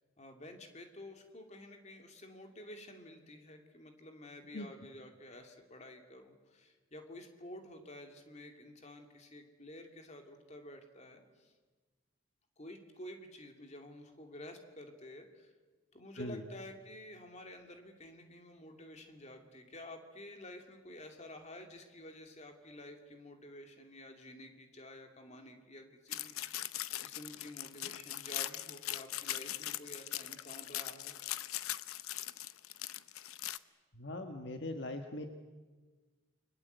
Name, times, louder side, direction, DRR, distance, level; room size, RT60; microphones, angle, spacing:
voice 1, 0.2-11.5 12.6-15.5 15.9-26.7 27.0-31.2, left 1 dB, 30° left, 4 dB, 2.7 m, -51 dB
sound 1, 26.1-33.6, left 13 dB, 85° left, 0.8 m, -40 dB
voice 2, 33.9-35.3, left 1 dB, 55° left, 5 dB, 1.5 m, -41 dB
29.5 x 22.5 x 8.1 m, 1.4 s
head